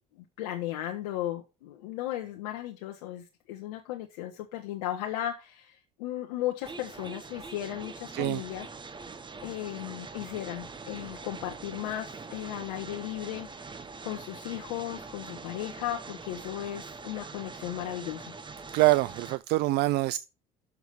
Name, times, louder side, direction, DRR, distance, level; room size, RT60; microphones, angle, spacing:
voice 1, 0.4-8.7 9.4-18.3, left 13 dB, 80° left, 1.1 m, -36 dB
sound 1, 6.6-19.4, right 4 dB, 25° right, 1.1 m, -43 dB
voice 2, 8.1-8.4 18.7-20.2, right 19 dB, 60° right, 0.4 m, -25 dB
6.9 x 6.0 x 6.5 m
hypercardioid pair, 65°, 19 cm